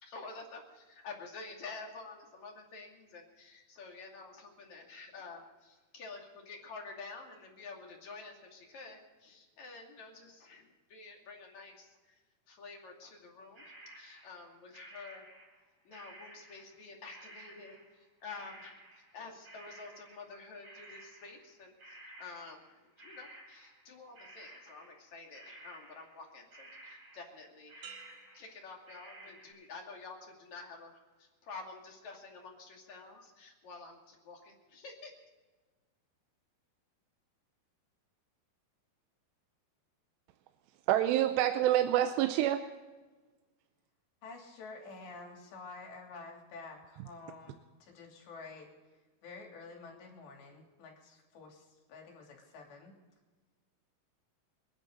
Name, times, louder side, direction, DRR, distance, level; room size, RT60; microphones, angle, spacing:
voice 1, 0.0-11.9 12.5-13.6 14.0-15.2 15.9-17.8 18.2-18.8 19.1-22.6 23.0-27.9 28.3-35.1, left 4 dB, 45° left, 0 dB, 3.6 m, -49 dB
sound 1, 13.5-15.7 15.9-22.7 23.0-26.3 26.5-27.4 27.7-29.5, right 1 dB, 30° right, 5.0 m, -54 dB
sound 2, 27.8-29.6 30.1-30.6, right 6 dB, 60° right, 3.4 m, -55 dB
voice 2, 40.9-42.6, right 12 dB, 90° right, 8 dB, 2.9 m, -27 dB
voice 3, 44.2-48.7 49.2-52.9, left 3 dB, 85° left, 1 dB, 5.2 m, -49 dB
28.5 x 11.0 x 4.0 m, 1.3 s
omnidirectional pair, 4.8 m